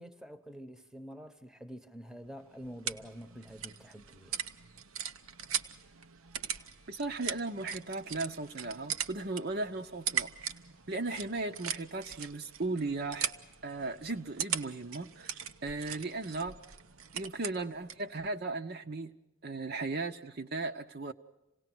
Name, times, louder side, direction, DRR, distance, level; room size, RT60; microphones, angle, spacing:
voice 1, 0.0-4.4, equal, 5° right, 0.9 m, -47 dB
sound 1, 2.2-18.1, right 8 dB, 90° right, 0.9 m, -40 dB
voice 2, 6.9-10.3 10.9-13.3 13.6-16.6 17.1-19.1 19.4-21.1, right 3 dB, 50° right, 0.8 m, -36 dB
27.5 x 18.0 x 6.1 m
head